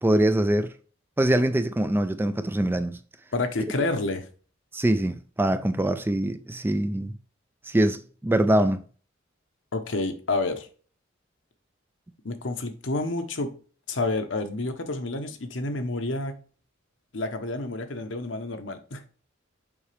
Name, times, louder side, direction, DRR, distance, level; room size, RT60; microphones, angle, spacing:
voice 1, 0.0-0.7 1.2-3.0 4.7-7.1 7.7-8.8, right 1 dB, 10° right, 0.4 m, -23 dB
voice 2, 3.3-4.3 9.7-10.7 12.2-13.5 13.9-16.4 17.1-19.1, left 2 dB, 65° left, 1.0 m, -29 dB
7.1 x 4.9 x 3.3 m
head